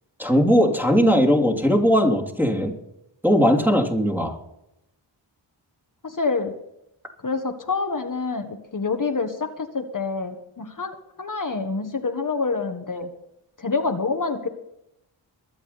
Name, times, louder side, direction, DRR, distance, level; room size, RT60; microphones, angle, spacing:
voice 1, 0.2-2.7 3.2-4.3, equal, 5° right, 1 dB, 3.1 m, -19 dB
voice 2, 6.0-6.5 7.2-13.1 13.6-14.5, left 4 dB, 45° left, 5 dB, 1.5 m, -27 dB
22.5 x 8.7 x 4.2 m, 0.82 s
wide cardioid pair, 85°, 46 cm